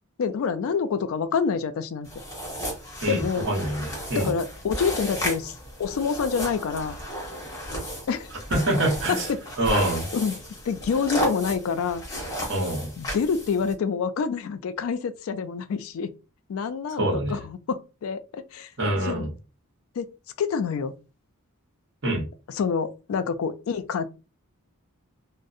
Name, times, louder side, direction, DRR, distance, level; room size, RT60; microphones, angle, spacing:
voice 1, 0.2-2.1 3.1-3.5 4.2-5.5 5.8-7.0 8.1-8.3 9.1-9.4 10.1-10.4 10.6-12.0 13.0-16.1 16.5-18.7 19.1-19.3 20.0-20.9 22.6-24.0, left 6 dB, 70° left, 0.3 m, -27 dB
sound 1, 2.0-13.7, equal, 15° left, 0.8 m, -34 dB
voice 2, 3.0-4.3 8.5-9.3 9.6-10.1 12.5-12.9 17.0-17.4 18.8-19.3 22.0-22.2, right 1 dB, 55° right, 0.9 m, -25 dB
2.6 x 2.0 x 2.4 m
head